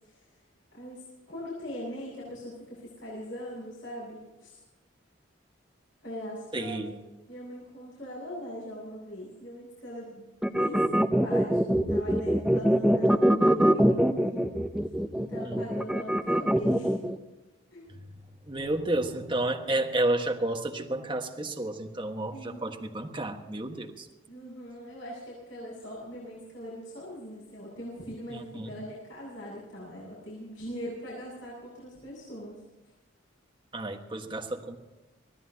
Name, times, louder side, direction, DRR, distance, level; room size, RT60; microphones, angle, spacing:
voice 1, 0.7-4.6 6.0-6.9 7.3-11.5 11.9-14.5 15.1-17.0 17.7-17.9 22.3-22.7 24.3-32.6, equal, 75° left, -5 dB, 7.6 m, -41 dB
voice 2, 6.5-7.0 15.4-15.6 17.9-18.0 18.4-24.1 28.3-28.8 33.7-34.8, right 2 dB, 25° right, 2 dB, 1.5 m, -31 dB
sound 1, 10.4-17.2, equal, 5° right, 0.7 m, -23 dB
26.0 x 17.5 x 2.9 m, 1.1 s
head